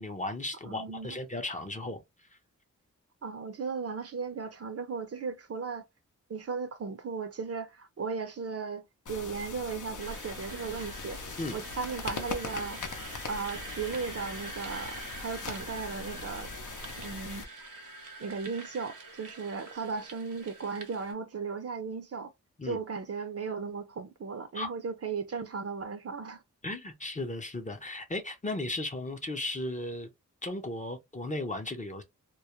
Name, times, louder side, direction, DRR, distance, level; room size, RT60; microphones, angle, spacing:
voice 1, 0.0-2.0 11.4-11.6 22.6-22.8 24.5-24.7 26.6-30.1 30.4-32.0, left 2 dB, 25° left, 0.5 m, -35 dB
voice 2, 0.7-1.2 3.2-5.8 6.3-11.2 11.5-12.8 13.3-16.5 17.0-17.4 18.2-22.3 22.6-26.4, right 5 dB, 50° right, 0.5 m, -36 dB
sound 1, 9.1-17.4, left 4 dB, 70° left, 0.6 m, -41 dB
sound 2, 10.0-21.1, right 2 dB, 80° right, 0.9 m, -45 dB
2.2 x 2.0 x 2.9 m
wide cardioid pair, 90°, 32 cm